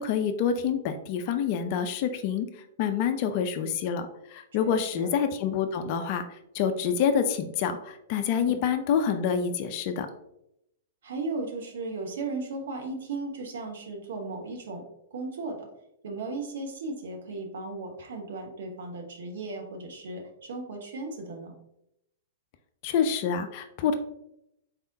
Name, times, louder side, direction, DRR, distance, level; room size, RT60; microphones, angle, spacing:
voice 1, 0.0-2.5 2.8-10.1 22.8-23.9, left 7 dB, 40° left, 8 dB, 0.4 m, -27 dB
voice 2, 4.6-5.1 8.4-8.6 11.0-14.8 15.1-15.7 16.0-21.5, right 3 dB, 60° right, 2 dB, 0.8 m, -36 dB
4.0 x 3.4 x 2.7 m, 0.80 s
figure-of-eight pair, 105°, 0 cm